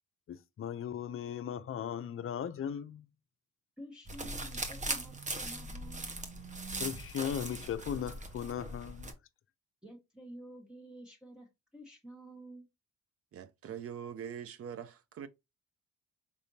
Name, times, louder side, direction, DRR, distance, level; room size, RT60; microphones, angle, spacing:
voice 1, 0.3-3.1 6.8-9.1, left 8 dB, 45° left, 0.6 m, -37 dB
voice 2, 3.8-6.1 9.8-12.7, right 1 dB, 5° right, 1.2 m, -50 dB
sound 1, 4.1-9.1, right 2 dB, 25° right, 0.9 m, -40 dB
voice 3, 13.3-15.3, right 8 dB, 50° right, 0.6 m, -43 dB
5.1 x 3.4 x 2.8 m
cardioid pair, 90°, 30 cm